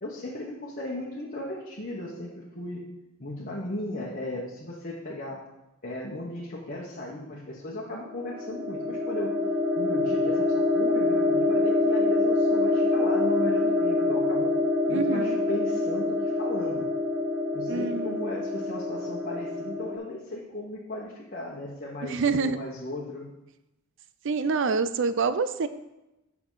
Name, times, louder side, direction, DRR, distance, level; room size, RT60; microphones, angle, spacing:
voice 1, 0.0-2.9 3.2-5.4 5.8-9.4 9.8-10.5 10.7-14.5 14.9-16.8 17.5-23.3, left 1 dB, 40° left, -4 dB, 1.2 m, -36 dB
sound 1, 8.1-20.0, left 2 dB, 5° right, 1.1 m, -25 dB
voice 2, 14.9-15.4 17.7-18.2 22.0-22.6 24.2-25.7, right 4 dB, 60° right, 12 dB, 0.5 m, -26 dB
8.6 x 5.9 x 3.9 m, 0.95 s
head